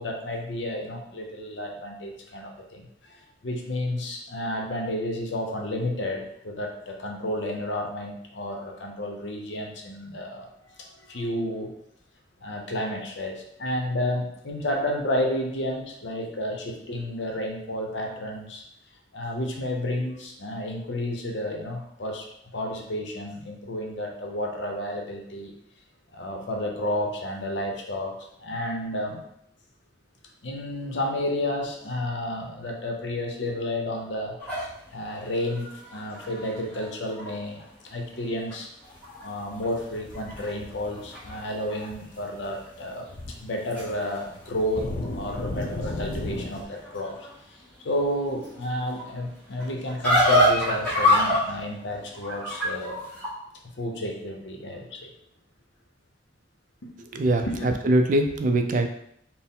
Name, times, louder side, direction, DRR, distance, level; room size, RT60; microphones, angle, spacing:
voice 1, 0.0-11.7 12.4-18.6 19.1-22.3 22.5-25.5 26.1-29.2 30.4-34.4 34.9-38.7 39.2-43.1 43.4-44.9 45.2-47.2 47.5-47.6 47.8-53.0 53.8-55.1 57.3-57.7, left 1 dB, 70° left, 2 dB, 0.7 m, -31 dB
sound 1, 34.4-37.6 38.1-38.2 38.5-39.3 39.6-41.9 42.1-42.7 43.3-53.3, left 1 dB, 5° left, 1.1 m, -28 dB
sound 2, 39.5-41.6 41.9-42.1 42.4-42.6 42.9-43.4 43.7-43.8 44.4-46.6, left 2 dB, 45° left, 0.4 m, -35 dB
voice 2, 57.1-58.9, right 1 dB, 45° right, 5 dB, 0.4 m, -22 dB
4.3 x 2.0 x 3.6 m, 0.72 s
head